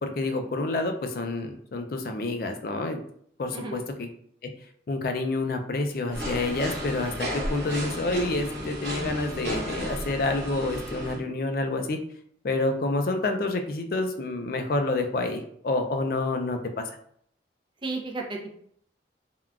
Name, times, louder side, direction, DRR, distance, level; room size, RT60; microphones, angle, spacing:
voice 1, 0.0-3.0 3.4-4.1 4.4-4.5 4.9-12.0 12.4-16.9, left 2 dB, 55° left, 5 dB, 0.4 m, -28 dB
sound 1, 6.1-11.2, equal, 70° right, 0.8 m, -33 dB
voice 2, 17.8-18.6, right 3 dB, 25° right, 1 dB, 0.4 m, -33 dB
3.6 x 2.2 x 2.3 m, 0.64 s
head